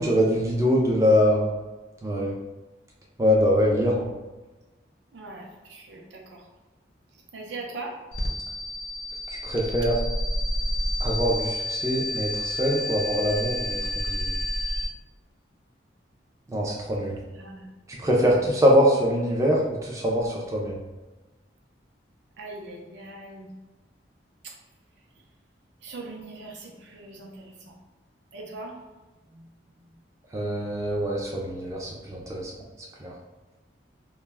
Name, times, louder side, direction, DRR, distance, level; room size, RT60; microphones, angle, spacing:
voice 1, 0.0-1.5 2.0-2.3 3.2-4.1 9.4-10.0 11.0-14.3 16.5-17.2 17.9-20.8 30.3-32.5 33.0-33.1, equal, 15° right, -3 dB, 0.3 m, -23 dB
voice 2, 5.1-6.5 7.3-8.0 17.2-17.7 18.1-18.5 22.4-23.5 24.4-24.5 25.8-27.7 28.3-28.8 29.3-29.5 29.8-29.9, right 2 dB, 75° right, 0 dB, 0.5 m, -41 dB
sound 1, 8.1-14.9, left 1 dB, 60° left, 0.5 m, -29 dB
2.2 x 2.0 x 3.2 m, 1.2 s
head